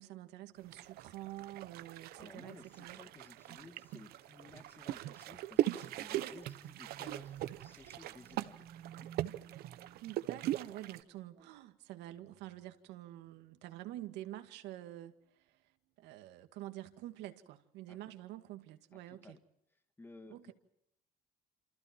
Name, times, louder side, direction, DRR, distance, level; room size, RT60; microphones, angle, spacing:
voice 1, 0.0-3.0 10.0-15.2 16.0-19.4 20.3-20.5, right 14 dB, 90° right, 8 dB, 2.2 m, -48 dB
sound 1, 0.7-11.0, right 14 dB, 65° right, 1.1 m, -40 dB
voice 2, 2.2-8.5 17.9-18.0 18.9-19.4 20.0-20.5, left 2 dB, 10° left, 8 dB, 2.1 m, -56 dB
sound 2, 6.7-10.7 11.3-11.7 12.1-12.7 13.3-13.4 13.9-14.0, right 9 dB, 50° right, 1.6 m, -55 dB
28.5 x 28.0 x 4.6 m, 0.79 s
cardioid pair, 170°, 17 cm